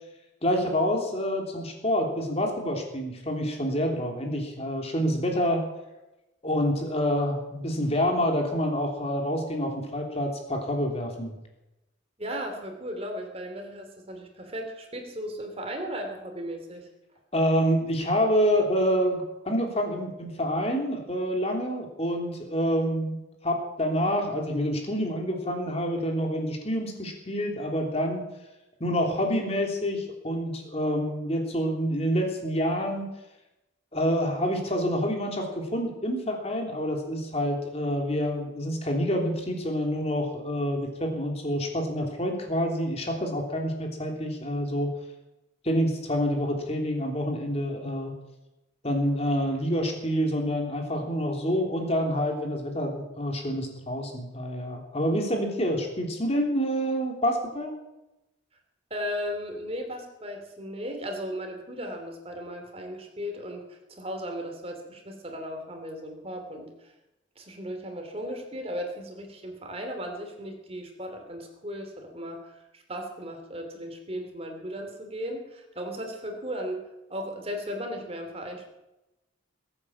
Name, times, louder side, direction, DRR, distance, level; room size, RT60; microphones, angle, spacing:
voice 1, 0.4-5.7 6.4-11.4 17.3-23.2 23.4-28.3 28.8-33.1 33.9-44.9 45.6-48.1 48.8-57.7, equal, 30° left, 2 dB, 3.2 m, -27 dB
voice 2, 12.2-16.9 58.9-66.9 67.4-76.8 77.1-78.7, equal, 30° right, 4 dB, 3.0 m, -36 dB
20.5 x 9.0 x 7.3 m, 0.96 s
head